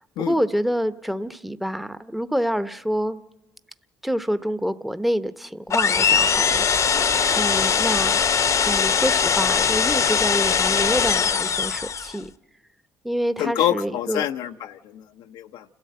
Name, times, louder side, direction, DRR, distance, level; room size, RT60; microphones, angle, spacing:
voice 1, 0.2-3.2 4.0-7.0 7.3-8.1 8.6-12.3 13.0-14.3, equal, ahead, 11 dB, 0.8 m, -27 dB
sound 1, 5.7-12.2, left 6 dB, 45° left, 0.8 m, -21 dB
voice 2, 13.4-15.0 15.3-15.6, left 11 dB, 80° left, 6 dB, 0.6 m, -26 dB
29.0 x 13.0 x 7.7 m, 1.0 s
supercardioid pair, 80°, 8 cm